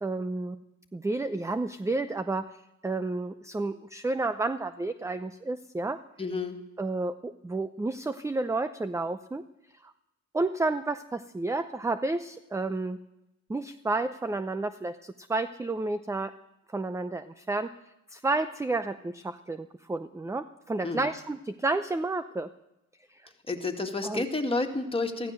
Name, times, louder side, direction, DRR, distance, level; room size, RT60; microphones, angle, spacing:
voice 1, 0.0-0.6 0.9-6.0 6.8-9.4 9.8-9.9 10.3-13.0 13.5-16.3 16.7-17.7 18.1-22.5 23.1-23.3 24.0-24.2, right 2 dB, 10° right, 11 dB, 0.6 m, -31 dB
voice 2, 6.2-6.6 20.8-21.1 23.5-25.3, left 3 dB, 20° left, 3 dB, 2.2 m, -30 dB
14.5 x 14.5 x 6.6 m, 0.89 s
cardioid pair, 90°, 30 cm